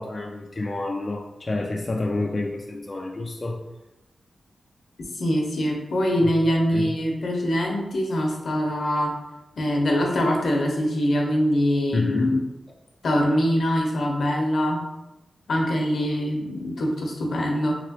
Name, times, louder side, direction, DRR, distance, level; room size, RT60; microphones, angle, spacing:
voice 1, 0.0-3.6 6.2-6.3 6.7-7.0 11.9-12.4, left 2 dB, 35° left, 0 dB, 0.3 m, -28 dB
voice 2, 5.1-9.1 9.6-12.4 13.0-14.8 15.5-17.8, equal, 75° left, 0 dB, 0.7 m, -23 dB
3.0 x 2.9 x 2.8 m, 0.98 s
cardioid pair, 75°, 0 cm